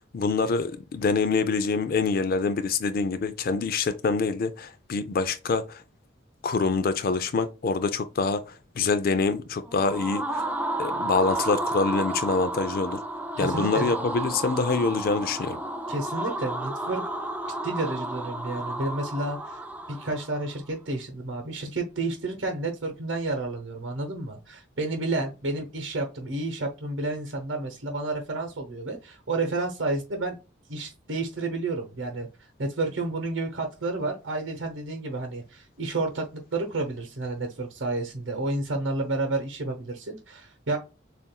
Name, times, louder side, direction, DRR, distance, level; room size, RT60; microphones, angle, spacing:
voice 1, 0.1-5.8 6.4-10.4 10.8-13.0 13.4-15.6, left 4 dB, 50° left, 0.4 m, -25 dB
sound 1, 9.6-20.5, right 1 dB, 10° right, 0.5 m, -32 dB
voice 2, 13.4-13.9 15.9-17.0 17.6-19.6 19.9-30.4 30.7-40.8, right 2 dB, 70° right, 0.9 m, -30 dB
6.9 x 2.5 x 2.2 m
head